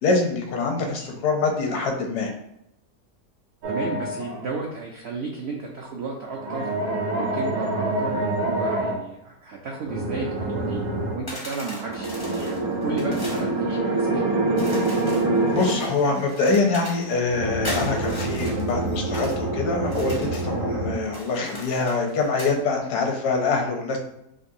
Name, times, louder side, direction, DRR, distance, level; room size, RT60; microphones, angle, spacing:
voice 1, 0.0-2.3 15.5-24.0, left 3 dB, 80° left, 3 dB, 1.2 m, -24 dB
voice 2, 0.8-1.2 3.7-6.7 7.1-10.8 11.1-14.3, right 4 dB, 80° right, -1 dB, 0.6 m, -33 dB
sound 1, 3.6-4.5 6.3-9.0 9.8-11.2 11.8-15.9 17.3-20.9, right 2 dB, 60° right, 1.0 m, -26 dB
sound 2, 11.3-13.5 14.6-17.1 17.6-19.4 19.8-20.5 21.0-22.6, left 1 dB, 30° left, 0.4 m, -39 dB
3.8 x 2.5 x 2.6 m, 0.81 s
omnidirectional pair, 1.7 m